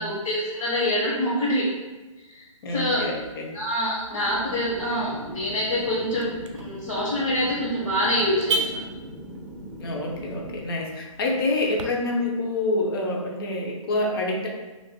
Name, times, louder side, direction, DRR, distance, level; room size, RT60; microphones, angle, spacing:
voice 1, 0.0-1.6 2.3-2.4 2.7-3.0 3.5-8.6, equal, 65° left, -10 dB, 1.1 m, -25 dB
voice 2, 2.6-3.5 9.8-14.5, left 2 dB, 45° left, 0 dB, 0.7 m, -27 dB
Car / Alarm, 2.7-11.8, right 3 dB, 60° right, 0.4 m, -37 dB
sound 1, 4.2-10.7, equal, ahead, 0.4 m, -40 dB
2.6 x 2.5 x 3.6 m, 1.2 s
hypercardioid pair, 150°, 18 cm